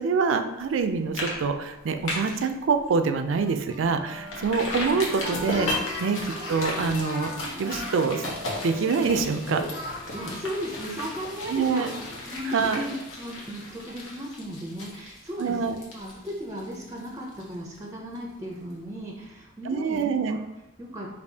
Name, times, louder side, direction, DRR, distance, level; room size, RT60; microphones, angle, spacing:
voice 1, 0.0-7.3 7.6-8.2 8.6-9.6 11.5-11.9 12.5-12.8 15.4-15.8 19.7-20.4, right 5 dB, 75° right, 8 dB, 0.4 m, -25 dB
sound 1, 0.6-0.8 1.1-1.4 1.7-2.4 2.9-3.0 3.4-3.5 4.3-17.8 18.1-18.2, left 1 dB, 90° left, 1.0 m, -35 dB
Speech, 3.3-3.9 5.0-8.0 9.7-11.4 11.8-11.9 12.3-13.7, left 3 dB, 60° left, 1.0 m, -41 dB
Wind instrument woodwind instrument, 3.8-9.4, left 2 dB, 10° left, 0.9 m, -39 dB
voice 2, 10.1-11.9 12.2-20.0 20.3-20.4 20.8-21.1, equal, 15° right, -1 dB, 0.5 m, -36 dB
5.3 x 2.7 x 2.7 m, 0.93 s
head